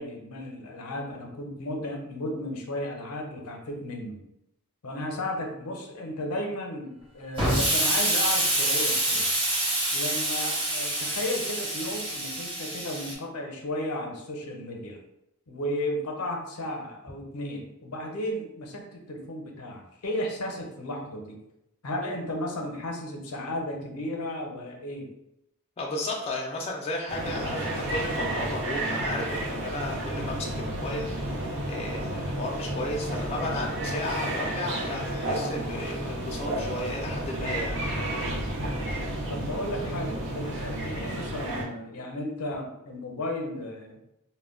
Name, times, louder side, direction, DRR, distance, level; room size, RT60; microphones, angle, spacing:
voice 1, 0.0-4.2 4.8-9.3 9.9-15.0 15.5-21.4 21.8-25.1 39.1-44.0, left 1 dB, 80° left, 2 dB, 0.6 m, -34 dB
Explosion, 7.4-13.1, right 1 dB, 25° right, 0.8 m, -26 dB
voice 2, 25.8-37.8, left 2 dB, 25° left, -2 dB, 0.3 m, -34 dB
sound 1, 27.1-41.6, right 1 dB, 55° right, 0.6 m, -31 dB
2.1 x 2.0 x 3.6 m, 0.81 s
head